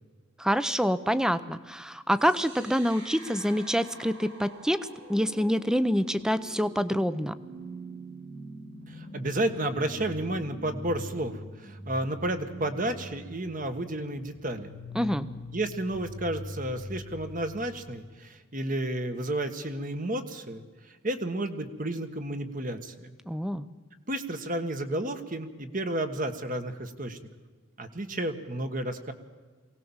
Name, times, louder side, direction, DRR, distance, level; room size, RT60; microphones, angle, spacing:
voice 1, 0.4-7.3 14.9-15.3 23.3-23.7, equal, 5° right, 14 dB, 0.7 m, -26 dB
sound 1, 2.2-18.1, equal, 60° right, 6.4 m, -44 dB
voice 2, 8.9-14.7 15.5-20.6 21.0-23.1 24.1-27.2 27.8-29.1, right 1 dB, 40° right, 8 dB, 1.6 m, -32 dB
23.0 x 18.0 x 7.3 m, 1.4 s
head